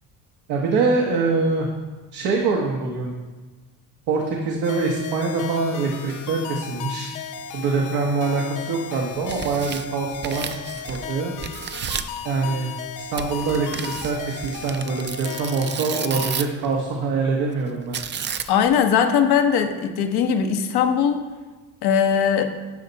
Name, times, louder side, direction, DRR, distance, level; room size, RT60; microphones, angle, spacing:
voice 1, 0.5-1.7 2.1-3.1 4.1-7.1 7.5-11.3 12.2-18.0, right 4 dB, 90° right, -1 dB, 1.1 m, -24 dB
sound 1, 4.6-16.4, left 7 dB, 55° left, 0.7 m, -36 dB
Tearing, 9.1-11.1 11.4-12.2 13.2-16.7 17.9-18.7, right 8 dB, 30° right, 0.4 m, -32 dB
voice 2, 18.5-21.2 21.8-22.4, left 7 dB, 85° left, 6 dB, 1.0 m, -20 dB
10.0 x 5.5 x 4.0 m, 1.3 s
cardioid pair, 95°, 38 cm